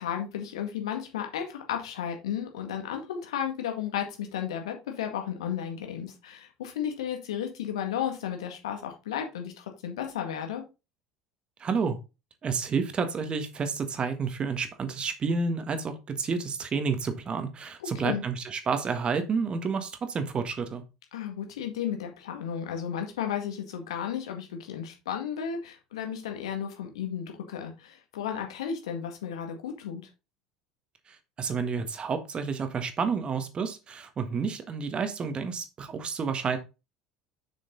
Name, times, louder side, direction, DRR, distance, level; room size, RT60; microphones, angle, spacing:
voice 1, 0.0-10.6 17.8-18.2 21.1-30.0, left 8 dB, 70° left, 4 dB, 1.9 m, -33 dB
voice 2, 11.6-12.0 12.4-20.8 31.1-36.6, right 5 dB, 35° right, 8 dB, 1.6 m, -30 dB
6.8 x 6.3 x 3.9 m, 0.27 s
figure-of-eight pair, 65°, 3 cm